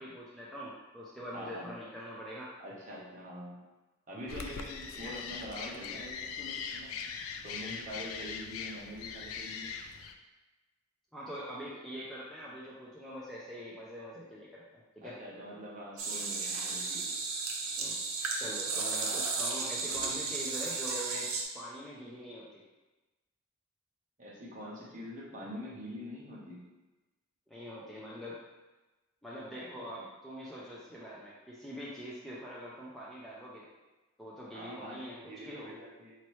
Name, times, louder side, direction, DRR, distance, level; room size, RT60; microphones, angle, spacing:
voice 1, 0.0-2.5 4.9-5.2 11.1-15.2 17.8-18.0 18.4-21.3 21.5-22.6 27.5-28.4 29.2-33.7 34.2-35.7, equal, ahead, -7 dB, 0.4 m, -44 dB
voice 2, 1.3-1.7 2.6-3.6 4.1-6.9 7.4-9.8 15.0-17.1 19.9-20.0 24.2-26.6 29.6-30.0 34.5-36.1, equal, 35° right, -5 dB, 0.9 m, -45 dB
sound 1, 4.3-10.1, left 6 dB, 70° left, 0.3 m, -41 dB
sound 2, 16.0-21.4, right 4 dB, 75° right, 0.6 m, -34 dB
4.0 x 3.0 x 3.1 m, 1.1 s
head